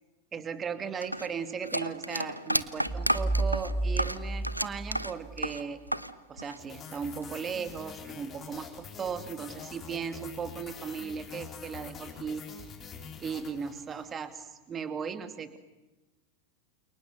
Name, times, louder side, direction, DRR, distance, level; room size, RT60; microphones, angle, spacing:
voice 1, 0.3-5.8 6.3-12.7 13.2-15.6, right 6 dB, 20° right, 10 dB, 2.5 m, -37 dB
sound 1, 1.0-6.1 6.4-7.2, equal, 90° right, 1.0 m, -31 dB
sound 2, 2.9-5.5, right 2 dB, 5° right, 1.0 m, -32 dB
sound 3, 6.6-14.1, left 6 dB, 20° left, 4.8 m, -45 dB
29.0 x 28.5 x 6.7 m, 1.1 s
figure-of-eight pair, 90°, 0 cm